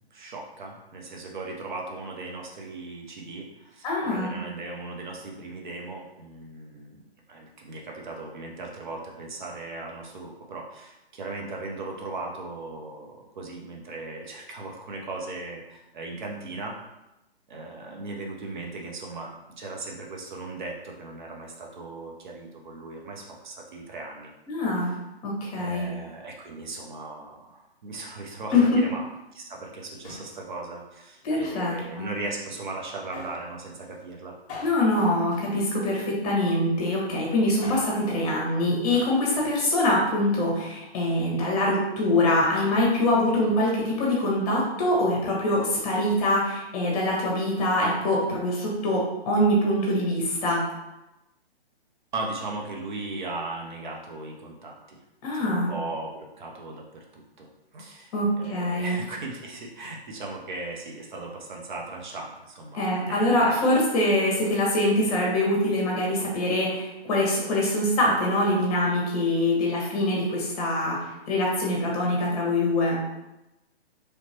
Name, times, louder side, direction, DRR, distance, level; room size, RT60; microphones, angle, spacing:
voice 1, 0.1-7.0 7.3-16.7 17.5-24.3 24.9-25.0 25.6-29.0 29.3-34.4 52.1-55.0 55.4-57.5 57.7-63.8, right 2 dB, 45° right, 0 dB, 0.6 m, -38 dB
voice 2, 3.8-4.3 24.5-24.9 25.2-25.9 28.5-28.8 31.2-32.1 34.6-50.6 55.2-55.7 58.1-59.0 62.7-71.0 71.3-73.0, left 1 dB, 35° left, -3 dB, 1.1 m, -24 dB
Male speech man speaking, 28.3-29.1 30.0-30.4 31.2-32.0 33.1-33.5 34.5-36.1 37.4-38.0 38.9-39.2 39.5-39.6, left 3 dB, 20° left, 0.8 m, -43 dB
3.2 x 2.9 x 2.8 m, 0.95 s
hypercardioid pair, 140°, 32 cm